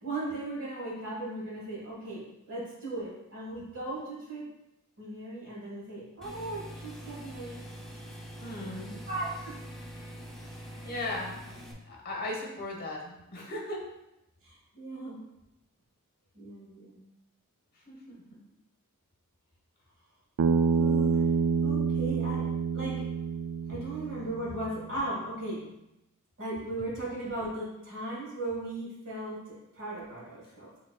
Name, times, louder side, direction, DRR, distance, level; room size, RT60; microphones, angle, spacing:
voice 1, 0.0-4.5 5.0-7.6 9.1-9.6 14.4-15.2 16.3-17.0 20.8-21.2 21.6-23.0 23.7-25.7 26.4-30.7, right 2 dB, 60° right, -4 dB, 1.6 m, -37 dB
sound 1, 6.2-11.7, equal, ahead, 0.6 m, -44 dB
voice 2, 8.4-9.1 10.8-11.5 11.9-13.9 17.7-18.4, left 1 dB, 45° left, 0 dB, 1.0 m, -37 dB
Bass guitar, 20.4-24.6, right 5 dB, 80° right, 0.3 m, -27 dB
6.2 x 3.6 x 2.3 m, 0.89 s
head